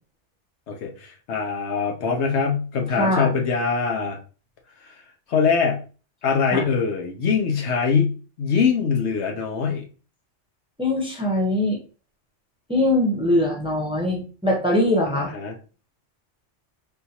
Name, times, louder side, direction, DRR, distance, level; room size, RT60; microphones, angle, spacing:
voice 1, 0.7-4.2 5.3-5.8 6.2-9.9 15.1-15.5, left 5 dB, 70° left, 2 dB, 1.0 m, -23 dB
voice 2, 2.9-3.3 6.5-6.7 10.8-11.8 12.7-15.3, left 1 dB, 5° right, -2 dB, 0.8 m, -22 dB
3.7 x 2.5 x 2.8 m, 0.36 s
omnidirectional pair, 1.2 m